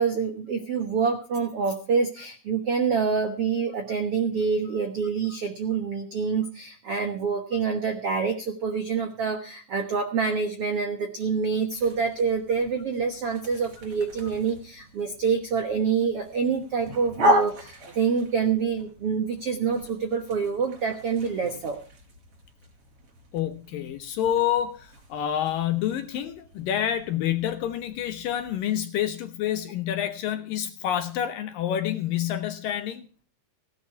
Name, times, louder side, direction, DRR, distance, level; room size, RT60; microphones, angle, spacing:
voice 1, 0.0-21.8, right 5 dB, 65° right, 6 dB, 1.4 m, -26 dB
sound 1, 11.7-28.5, equal, 35° right, 4.5 m, -35 dB
voice 2, 23.3-33.1, left 10 dB, 70° left, 10 dB, 2.3 m, -28 dB
16.5 x 11.0 x 4.6 m, 0.39 s
omnidirectional pair, 4.8 m